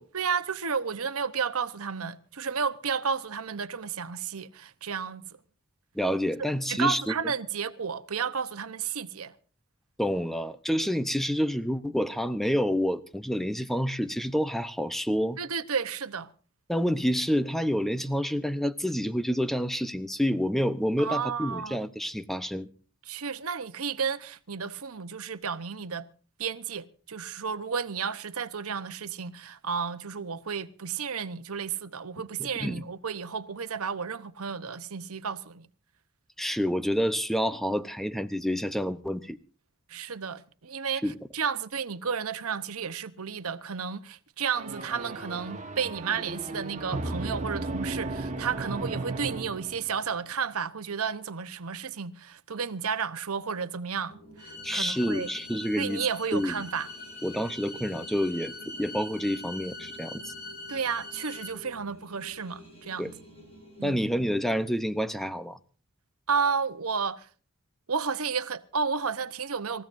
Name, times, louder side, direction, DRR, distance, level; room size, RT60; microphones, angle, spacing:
voice 1, 0.1-5.2 6.7-9.3 15.4-16.3 21.0-21.8 23.1-26.1 26.4-35.7 39.9-55.3 55.8-56.9 60.7-63.1 63.8-64.0 66.3-67.3 67.9-69.8, right 6 dB, 75° right, 1.0 m, -32 dB
voice 2, 6.0-7.0 10.0-15.4 16.7-22.7 32.4-32.8 36.4-39.4 41.0-41.2 54.6-56.0 56.3-56.5 57.2-60.3 63.0-63.1 63.8-65.6, equal, ahead, 0.7 m, -28 dB
sound 1, 44.5-50.1, right 2 dB, 30° right, 1.4 m, -35 dB
sound 2, 54.1-64.6, equal, 25° left, 7.4 m, -51 dB
sound 3, 54.4-61.5, left 2 dB, 55° left, 3.1 m, -43 dB
27.0 x 15.5 x 2.6 m
head